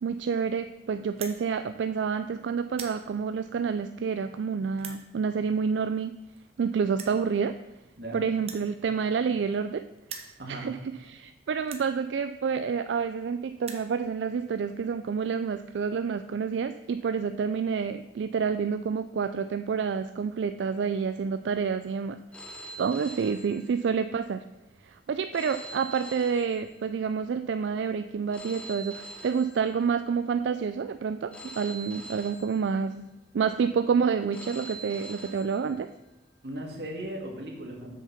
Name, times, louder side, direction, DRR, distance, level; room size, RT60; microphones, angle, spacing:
voice 1, 0.0-6.2 6.6-7.6 8.1-9.9 10.5-22.2 22.5-24.4 24.8-35.9, right 6 dB, 85° right, 10 dB, 0.4 m, -28 dB
sound 1, 1.1-1.4 2.1-2.3 2.6-3.0 3.7-3.8 4.7-5.0 6.1-6.2 6.4-6.5 6.9-7.2 8.4-9.7 10.0-10.3 11.0-11.1 11.6-11.9 12.8-12.9 13.1-13.2 13.5-13.9, right 6 dB, 35° right, 0.9 m, -42 dB
Telephone, 22.3-24.2 25.3-27.2 28.3-30.2 31.3-33.2 34.3-36.2, right 2 dB, 5° left, 0.8 m, -45 dB
voice 2, 36.4-37.9, right 1 dB, 60° right, 1 dB, 1.9 m, -37 dB
7.5 x 6.6 x 5.7 m, 0.92 s
head